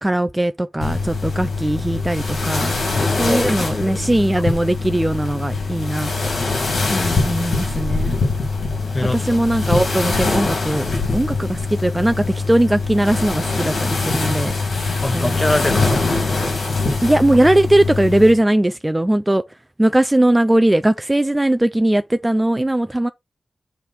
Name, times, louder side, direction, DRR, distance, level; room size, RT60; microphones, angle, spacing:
voice 1, 0.0-2.7 3.1-6.1 7.3-8.2 9.3-10.8 11.1-14.5 15.1-15.4 17.0-19.4 19.8-23.1, right 1 dB, 15° right, 0.4 m, -19 dB
sound 1, 0.8-18.4, left 3 dB, 90° left, 2.8 m, -23 dB
voice 2, 3.3-4.0 6.8-7.3 8.9-9.4 15.0-16.4, left 1 dB, 25° left, 1.2 m, -24 dB
7.3 x 3.4 x 4.3 m
cardioid pair, 60°, 0 cm